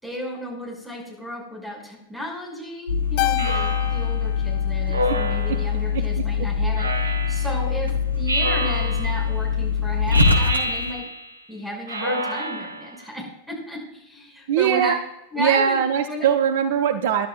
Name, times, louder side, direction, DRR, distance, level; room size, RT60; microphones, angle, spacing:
voice 1, 0.0-11.1 11.5-15.0 15.3-15.8 16.1-16.3, equal, 5° right, -1 dB, 6.3 m, -34 dB
sound 1, 2.9-10.9, left 6 dB, 85° left, 1.2 m, -23 dB
Keyboard (musical), 3.2-5.7, left 17 dB, 45° left, 0.4 m, -30 dB
Speech synthesizer, 3.4-4.2 4.9-5.8 6.8-7.6 8.3-9.3 10.1-11.3 11.9-12.9, right 1 dB, 75° right, 1.1 m, -27 dB
voice 2, 14.5-15.0 15.4-17.3, right 8 dB, 55° right, 10 dB, 0.7 m, -21 dB
26.5 x 11.0 x 2.5 m, 0.85 s
figure-of-eight pair, 90°, 0 cm